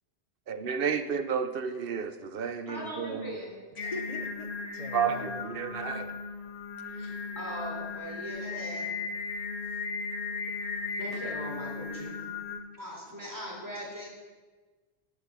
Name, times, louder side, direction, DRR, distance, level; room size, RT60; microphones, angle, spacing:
voice 1, 0.5-3.4 4.9-6.1, right 7 dB, 65° right, 9 dB, 0.9 m, -31 dB
voice 2, 2.7-3.6 6.9-8.9 11.0-12.2 12.8-14.1, equal, 20° right, -4 dB, 3.6 m, -40 dB
Singing, 3.8-12.6, left 4 dB, 85° left, 1.3 m, -36 dB
voice 3, 3.8-5.9 6.8-6.9, left 2 dB, 40° left, 3 dB, 0.9 m, -43 dB
13.0 x 7.0 x 6.1 m, 1.3 s
omnidirectional pair, 1.1 m